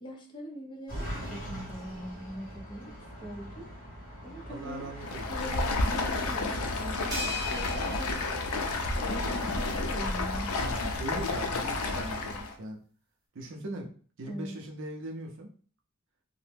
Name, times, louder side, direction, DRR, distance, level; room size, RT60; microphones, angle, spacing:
voice 1, 0.0-3.7 4.2-7.2 7.5-10.5 14.3-14.5, equal, 20° left, -1 dB, 0.7 m, -42 dB
sound 1, 0.9-11.5, equal, 40° left, 1.3 m, -44 dB
voice 2, 4.5-5.6 10.6-12.8 13.3-13.9 14.2-15.5, right 1 dB, 60° right, 2 dB, 0.5 m, -40 dB
Stream, 5.0-12.5, left 2 dB, 80° left, 0.5 m, -31 dB
sound 2, 7.1-9.6, left 3 dB, 15° right, 0.9 m, -39 dB
2.8 x 2.1 x 3.3 m, 0.43 s
head